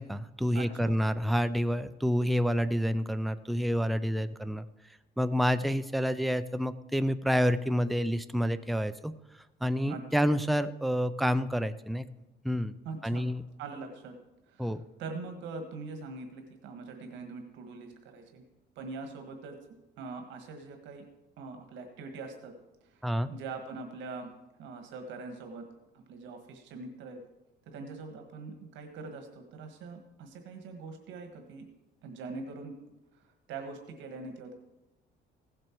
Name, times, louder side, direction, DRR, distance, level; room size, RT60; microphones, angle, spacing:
voice 1, 0.0-4.7 5.2-9.1 9.6-12.1 12.4-12.7 13.0-13.4 14.6-14.8 23.0-23.3, equal, ahead, 11 dB, 0.3 m, -28 dB
voice 2, 0.5-1.0 9.9-10.4 12.8-13.3 13.6-14.1 14.5-18.4 18.7-19.6 20.0-21.0 21.4-22.5 22.8-24.3 24.6-25.6 25.9-27.2 27.6-31.6 32.0-32.7 33.1-34.5, right 4 dB, 80° right, 5 dB, 1.5 m, -43 dB
16.0 x 7.7 x 4.5 m, 1.0 s
cardioid pair, 150°, 19 cm